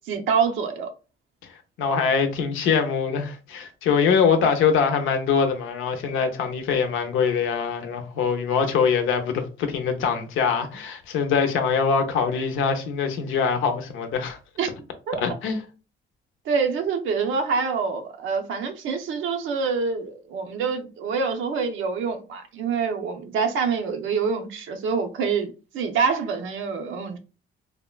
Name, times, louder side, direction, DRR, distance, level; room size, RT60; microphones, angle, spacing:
voice 1, 0.1-0.9 14.6-14.7 15.1-15.2 16.5-27.2, right 5 dB, 80° right, 0.6 m, -26 dB
voice 2, 1.8-14.4 15.2-15.6, left 6 dB, 90° left, 0.6 m, -23 dB
3.5 x 2.1 x 2.2 m
cardioid pair, 90°, 20 cm